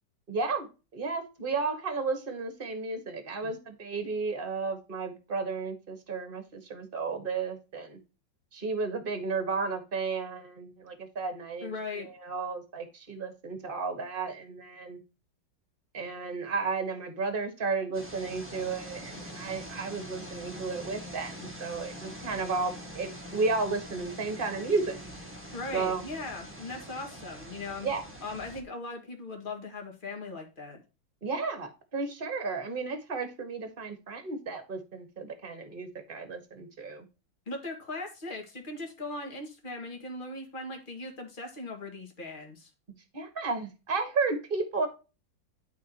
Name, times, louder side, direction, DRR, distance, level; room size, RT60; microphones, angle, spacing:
voice 1, 0.3-8.0 8.5-15.0 15.9-25.0 25.7-26.0 27.8-28.0 31.2-37.1 43.1-44.9, right 4 dB, 30° right, 7 dB, 1.7 m, -33 dB
voice 2, 11.6-12.1 25.5-27.9 28.2-30.8 37.5-42.7, left 2 dB, 25° left, 2 dB, 2.1 m, -39 dB
sound 1, 17.9-28.6, equal, 5° right, 1.5 m, -44 dB
12.0 x 4.8 x 2.9 m, 0.31 s
omnidirectional pair, 2.0 m